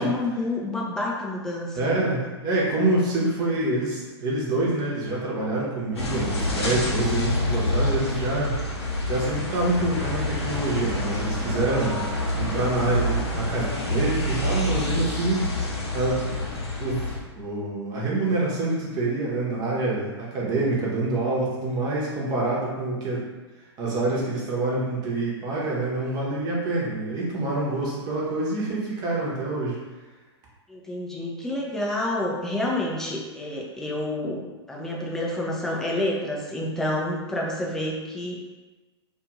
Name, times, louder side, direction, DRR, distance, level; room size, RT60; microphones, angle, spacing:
voice 1, 0.0-2.0 30.7-38.4, left 1 dB, 5° left, -3 dB, 0.4 m, -29 dB
voice 2, 1.7-8.6 9.1-12.0 12.4-15.6 15.9-16.2 16.8-17.1 17.3-23.2 23.8-29.8, right 2 dB, 30° right, -4 dB, 0.8 m, -26 dB
sound 1, 5.9-17.2, left 1 dB, 75° left, 0.6 m, -27 dB
2.5 x 2.4 x 3.0 m, 1.2 s
figure-of-eight pair, 105°, 14 cm